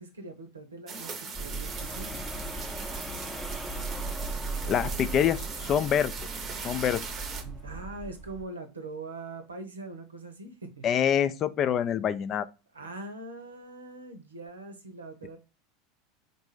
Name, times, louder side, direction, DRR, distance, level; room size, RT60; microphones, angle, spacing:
voice 1, 0.0-2.2 4.6-4.9 7.4-11.1 12.7-15.4, right 2 dB, 80° right, 0.8 m, -42 dB
sound 1, 0.9-7.4, right 4 dB, 35° right, 0.7 m, -39 dB
sound 2, 1.3-8.4, right 2 dB, ahead, 0.7 m, -37 dB
voice 2, 4.7-6.1 6.6-7.0 10.8-12.5, left 9 dB, 35° left, 0.4 m, -26 dB
3.9 x 2.6 x 4.7 m
figure-of-eight pair, 80°, 0 cm